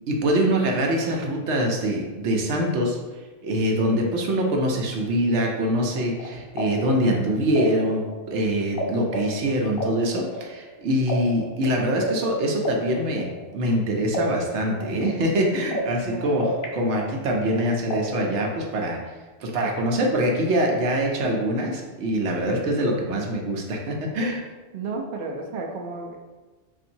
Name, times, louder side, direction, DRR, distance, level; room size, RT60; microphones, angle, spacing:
voice 1, 0.1-3.0 3.4-16.5 16.7-19.0 19.4-24.4, equal, 80° right, 1 dB, 1.0 m, -24 dB
sound 1, 5.8-8.8 9.1-13.8 14.1-16.6 16.9-18.6, equal, 55° left, 0.8 m, -32 dB
voice 2, 16.0-16.5 24.7-26.2, right 3 dB, 60° right, 1 dB, 0.7 m, -33 dB
5.6 x 2.6 x 2.6 m, 1.2 s
omnidirectional pair, 1.2 m